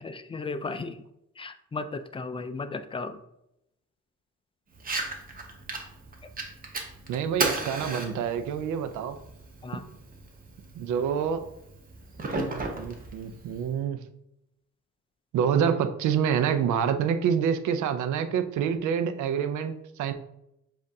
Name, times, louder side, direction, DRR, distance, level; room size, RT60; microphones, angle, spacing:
voice 1, 0.0-0.9 1.4-3.2 9.6-9.8, left 3 dB, 20° left, 10 dB, 0.4 m, -35 dB
Fire, 4.7-13.7, right 3 dB, 30° right, 0.8 m, -35 dB
voice 2, 7.1-9.2 10.7-11.4 12.4-14.0 15.3-20.1, right 8 dB, 75° right, 9 dB, 0.5 m, -27 dB
7.2 x 2.5 x 2.7 m, 0.82 s
cardioid pair, 90°, 30 cm